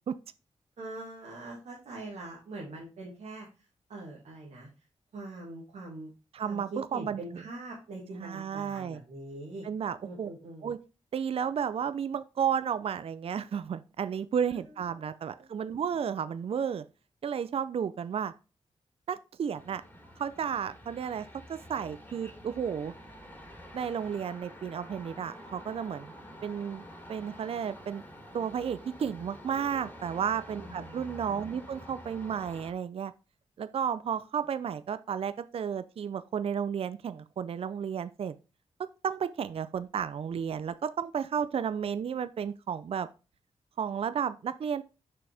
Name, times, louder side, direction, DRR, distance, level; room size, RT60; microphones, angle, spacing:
voice 1, 0.8-4.7 5.1-6.1 6.4-9.7 10.0-10.7 14.5-14.7 15.3-15.8, right 2 dB, 80° right, -4 dB, 2.1 m, -43 dB
voice 2, 6.3-7.2 8.2-9.0 9.6-10.3 10.6-10.8 11.1-16.8 17.2-18.3 19.1-19.8 20.2-22.9 23.7-26.1 26.4-26.8 27.1-28.0 28.3-33.1 33.6-38.4 38.8-43.1 43.8-44.8, right 7 dB, 55° right, 13 dB, 0.4 m, -32 dB
sound 1, 19.5-32.7, equal, 15° left, 2.5 m, -48 dB
6.1 x 5.9 x 3.4 m, 0.31 s
cardioid pair, 75°, 12 cm